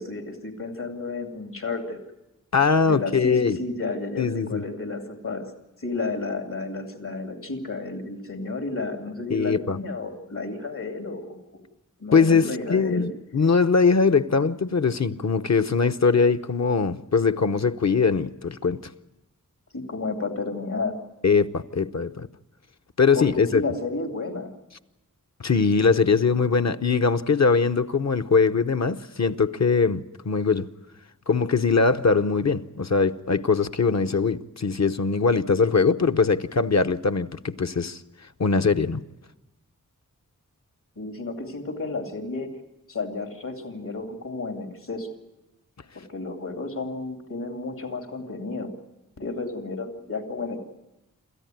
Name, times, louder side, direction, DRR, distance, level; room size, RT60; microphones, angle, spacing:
voice 1, 0.0-2.0 2.8-5.5 5.8-11.6 12.0-13.1 19.7-21.0 23.1-24.5 41.0-42.5 42.9-45.1 45.9-48.7 49.2-50.6, left 3 dB, 75° left, 2.8 m, -32 dB
voice 2, 2.5-3.6 4.2-4.6 9.3-9.8 12.1-18.8 21.2-22.3 23.0-23.6 25.4-30.7 31.3-38.0 38.4-39.0, left 5 dB, 55° left, 0.9 m, -21 dB
27.0 x 14.0 x 9.2 m
wide cardioid pair, 65°, 32 cm